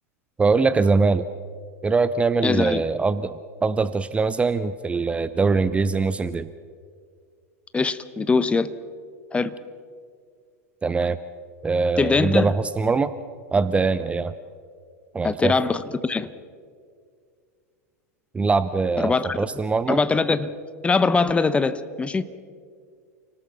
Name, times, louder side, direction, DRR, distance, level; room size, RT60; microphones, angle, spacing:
voice 1, 0.4-1.3 1.8-3.3 3.6-6.5 10.8-11.2 11.6-13.1 13.5-14.3 15.1-15.5 18.3-20.0, right 4 dB, 15° right, 14 dB, 0.6 m, -22 dB
voice 2, 2.4-2.9 7.7-8.7 9.3-9.5 12.0-12.5 15.2-16.3 19.0-19.4 19.9-20.5 20.8-22.2, left 4 dB, 15° left, 14 dB, 0.9 m, -22 dB
29.0 x 19.0 x 5.8 m, 2.1 s
figure-of-eight pair, 90°, 9 cm